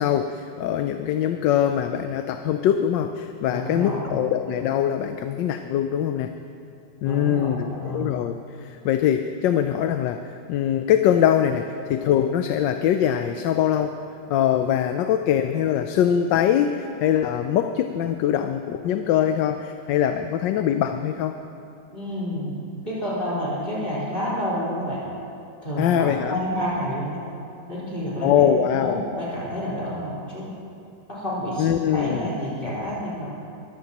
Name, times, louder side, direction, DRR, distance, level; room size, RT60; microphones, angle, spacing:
voice 1, 0.0-6.3 7.0-8.4 8.6-14.0 14.3-21.4 25.8-26.4 28.2-29.0 31.6-32.3, left 9 dB, 80° left, 7 dB, 1.3 m, -22 dB
voice 2, 3.5-4.2 7.0-8.2 21.9-22.5 22.8-25.0 25.6-27.2 27.7-28.4 28.8-30.5 31.1-33.3, equal, 30° left, -9 dB, 4.4 m, -29 dB
22.5 x 15.5 x 3.0 m, 2.7 s
omnidirectional pair, 2.0 m